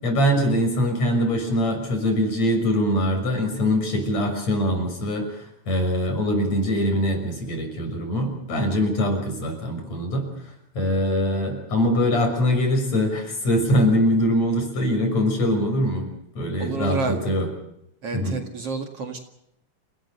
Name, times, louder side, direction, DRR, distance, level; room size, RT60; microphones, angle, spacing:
voice 1, 0.0-10.3 10.7-16.0 16.4-17.5 18.1-18.4, equal, 55° left, 4 dB, 7.4 m, -23 dB
voice 2, 16.6-17.3 18.0-19.2, right 3 dB, 50° right, 4 dB, 2.8 m, -29 dB
28.5 x 18.5 x 6.8 m, 0.79 s
omnidirectional pair, 3.7 m